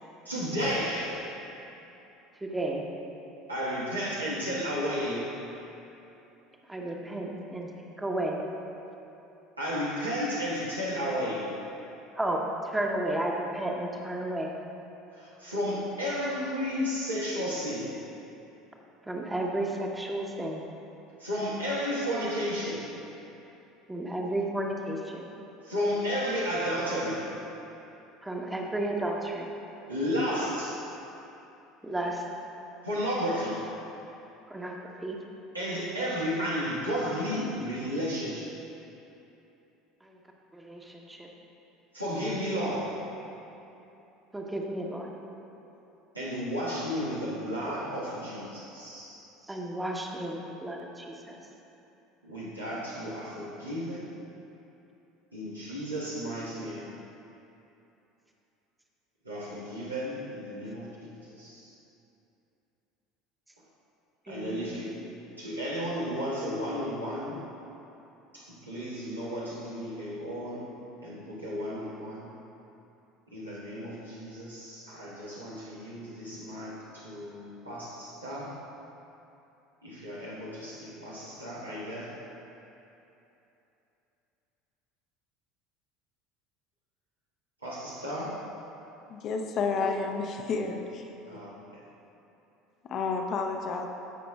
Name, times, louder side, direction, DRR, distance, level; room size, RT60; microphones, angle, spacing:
voice 1, 0.2-1.3 3.5-5.4 9.6-11.5 15.1-17.9 21.2-22.9 25.6-27.4 29.9-30.9 32.8-33.7 35.5-38.5 41.9-43.0 46.1-49.2 52.2-54.2 55.3-56.9 59.2-61.7 64.3-64.9 65.4-67.4 68.3-70.7 71.0-72.3 73.3-78.6 79.8-82.2 87.6-88.5 91.2-91.8, equal, 90° right, -8 dB, 1.5 m, -33 dB
voice 2, 2.4-2.8 6.7-7.7 8.0-8.4 12.2-14.5 19.1-20.6 23.9-25.3 28.2-29.5 31.8-32.2 34.5-35.2 40.5-41.3 44.3-45.1 49.5-51.1 64.3-64.7, right 1 dB, 10° right, 0 dB, 1.0 m, -32 dB
voice 3, 89.1-91.1 92.8-93.9, left 4 dB, 45° left, 3 dB, 0.7 m, -30 dB
15.5 x 5.9 x 2.4 m, 2.9 s
figure-of-eight pair, 65°, 0 cm